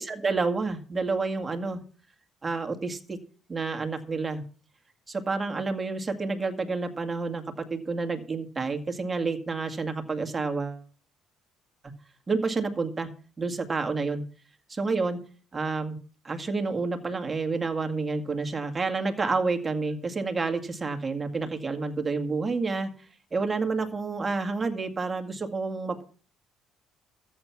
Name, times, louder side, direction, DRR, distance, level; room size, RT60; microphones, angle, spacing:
voice 1, 0.0-1.8 2.4-3.2 3.5-4.4 5.1-10.8 12.3-13.1 13.4-14.2 14.7-15.2 15.5-16.0 16.2-22.9 23.3-26.0, right 4 dB, 20° right, 5 dB, 2.0 m, -29 dB
13.5 x 9.0 x 5.9 m, 0.40 s
cardioid pair, 110°, 0 cm